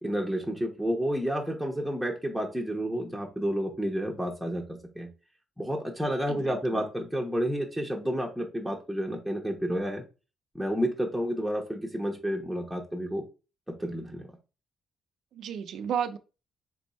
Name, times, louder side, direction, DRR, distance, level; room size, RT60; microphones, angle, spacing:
voice 1, 0.0-5.1 5.6-10.0 10.5-13.2 13.7-14.2, equal, ahead, 0.9 m, -30 dB
voice 2, 6.3-6.8 15.3-16.2, right 8 dB, 70° right, 0.4 m, -33 dB
3.4 x 3.3 x 4.1 m
cardioid pair, 90°, 0 cm